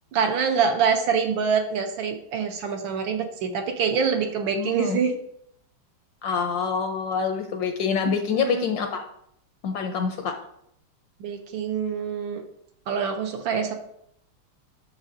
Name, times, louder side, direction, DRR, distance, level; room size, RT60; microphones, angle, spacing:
voice 1, 0.1-5.2 8.3-8.6 11.2-12.4 12.9-13.7, right 6 dB, 70° right, 5 dB, 1.4 m, -25 dB
voice 2, 4.5-5.0 6.2-9.0 9.6-10.3, left 6 dB, 70° left, 5 dB, 1.1 m, -26 dB
8.2 x 6.2 x 2.6 m, 0.72 s
omnidirectional pair, 2.4 m